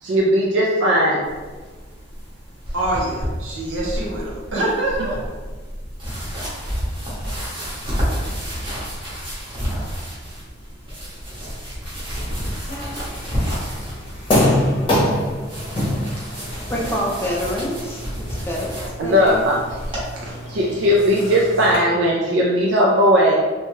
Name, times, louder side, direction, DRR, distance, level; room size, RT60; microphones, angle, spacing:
voice 1, 0.0-1.2 19.0-19.5 20.3-23.4, equal, 70° right, -3 dB, 0.4 m, -17 dB
sound 1, 1.2-20.0, equal, 25° right, 0.8 m, -30 dB
voice 2, 2.7-5.4, right 1 dB, 85° right, -4 dB, 0.8 m, -25 dB
sound 2, 12.7-21.8, left 1 dB, 30° left, 0.8 m, -26 dB
voice 3, 16.7-19.5, equal, 10° left, -3 dB, 0.4 m, -27 dB
2.7 x 2.2 x 3.0 m, 1.4 s
head